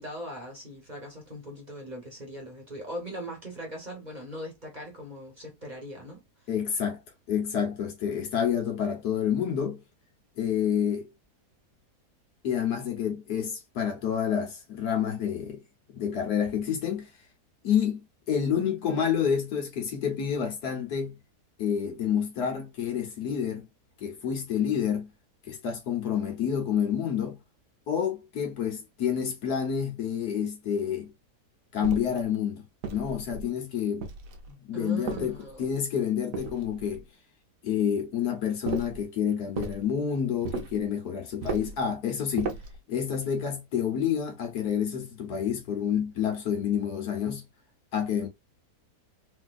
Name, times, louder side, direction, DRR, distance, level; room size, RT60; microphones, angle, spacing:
voice 1, 0.0-6.2 34.7-35.7, equal, 30° right, 1.1 m, -40 dB
voice 2, 6.5-7.0 7.3-9.8 10.4-11.1 12.4-15.6 15.9-17.1 17.6-18.0 18.3-21.1 21.6-23.7 24.0-25.1 25.5-27.4 27.9-31.1 31.7-32.6 32.9-34.1 34.5-37.0 37.6-42.5 42.9-47.4 47.9-48.3, left 8 dB, 70° left, 1.6 m, -28 dB
sound 1, 31.8-32.2 32.8-33.5 34.0-34.5 35.1-35.7 36.3-37.0 38.7-39.0 39.6-39.8 40.4-40.8 41.4-41.8 42.4-42.8, right 5 dB, 85° right, 1.3 m, -35 dB
3.6 x 2.6 x 2.4 m
omnidirectional pair, 1.7 m